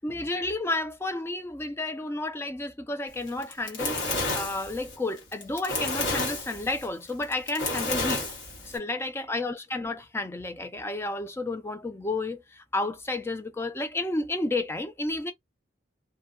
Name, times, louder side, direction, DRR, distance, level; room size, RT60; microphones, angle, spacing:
voice 1, 0.0-8.3 8.6-15.3, left 2 dB, 15° left, 0.3 m, -31 dB
Fire, 3.3-8.8, left 2 dB, 65° left, 1.2 m, -31 dB
2.7 x 2.1 x 2.3 m
head